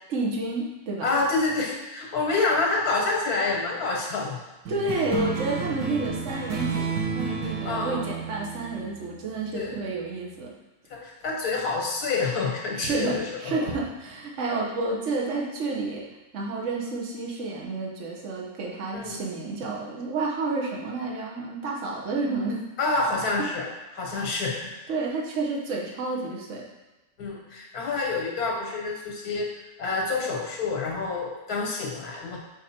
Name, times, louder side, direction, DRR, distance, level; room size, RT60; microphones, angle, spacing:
voice 1, 0.1-1.1 4.7-10.5 12.7-16.0 16.3-22.6 23.4-23.5 24.9-26.7, right 3 dB, 55° right, -2 dB, 1.3 m, -30 dB
voice 2, 1.0-4.4 7.6-8.0 9.5-9.8 10.9-13.7 18.9-19.2 22.8-23.7 23.9-24.7 27.2-29.5 29.8-32.4, left 3 dB, 80° left, -1 dB, 1.7 m, -27 dB
sound 1, 4.7-9.6, right 5 dB, 80° right, 1.6 m, -31 dB
6.6 x 3.9 x 4.3 m, 1.1 s
omnidirectional pair, 1.6 m